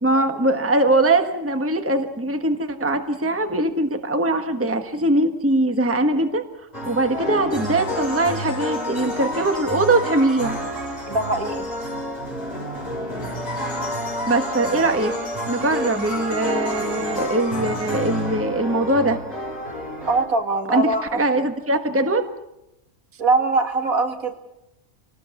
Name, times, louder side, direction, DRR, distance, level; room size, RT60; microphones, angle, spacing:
voice 1, 0.0-6.4 6.8-10.6 14.3-15.1 15.5-19.2 20.7-22.3, right 2 dB, 10° right, 6 dB, 1.4 m, -21 dB
sound 1, 6.7-20.2, equal, 25° left, 5.0 m, -29 dB
voice 2, 11.1-11.7 20.1-21.2 23.2-24.3, right 3 dB, 75° right, 4 dB, 2.9 m, -22 dB
27.0 x 19.0 x 7.2 m, 0.89 s
omnidirectional pair, 1.5 m